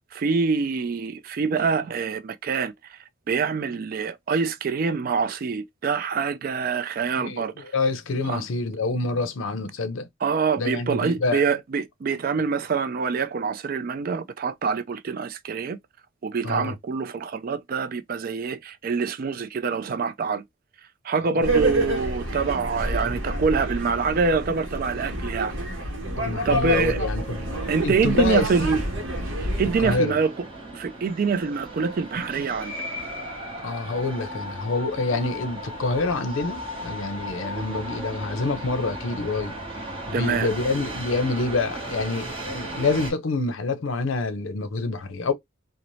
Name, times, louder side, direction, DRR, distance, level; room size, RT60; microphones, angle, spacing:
voice 1, 0.1-3.0 3.3-7.6 8.3-8.4 10.2-15.8 16.2-20.4 21.0-25.5 26.4-27.0 27.7-28.8 29.4-30.5 30.7-32.7 40.1-40.5, right 5 dB, 45° right, 0.3 m, -25 dB
voice 2, 7.2-10.1 10.6-11.4 16.4-16.7 21.4-21.5 26.2-27.5 27.8-28.5 29.8-30.2 33.6-39.5 40.1-45.3, left 3 dB, 75° left, 0.5 m, -27 dB
sound 1, 21.4-30.0, right 1 dB, 70° right, 0.8 m, -28 dB
sound 2, 27.2-43.1, equal, 30° right, 0.8 m, -36 dB
2.6 x 2.0 x 3.0 m
head